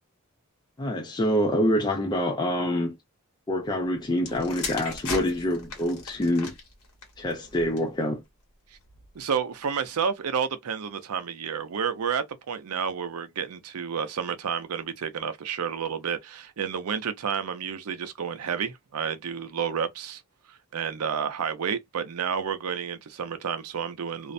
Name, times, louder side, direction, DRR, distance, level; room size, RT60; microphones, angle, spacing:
voice 1, 0.8-3.0 3.5-6.5 7.2-8.2, left 1 dB, 20° left, 0.3 m, -26 dB
sound 1, 4.2-8.0 8.8-9.1, left 4 dB, 85° left, 1.1 m, -37 dB
voice 2, 9.1-20.2 20.5-24.3, right 7 dB, 90° right, 0.5 m, -30 dB
2.5 x 2.1 x 2.5 m
head